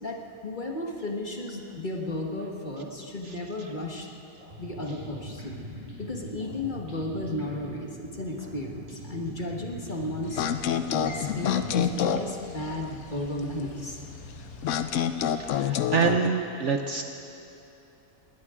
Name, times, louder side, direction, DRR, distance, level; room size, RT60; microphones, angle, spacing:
voice 1, 0.0-4.1 4.6-5.6 6.0-10.5 10.9-14.0, left 1 dB, 35° left, 0 dB, 1.4 m, -34 dB
sound 1, 4.4-12.0, equal, 30° right, 4.7 m, -43 dB
sound 2, 10.2-15.6, left 3 dB, 85° left, 1.7 m, -45 dB
sound 3, 10.4-12.3 14.6-16.3, left 9 dB, 65° left, 0.8 m, -27 dB
voice 2, 15.3-17.0, right 6 dB, 60° right, 5 dB, 0.9 m, -26 dB
19.5 x 19.0 x 3.7 m, 2.8 s
omnidirectional pair, 1.6 m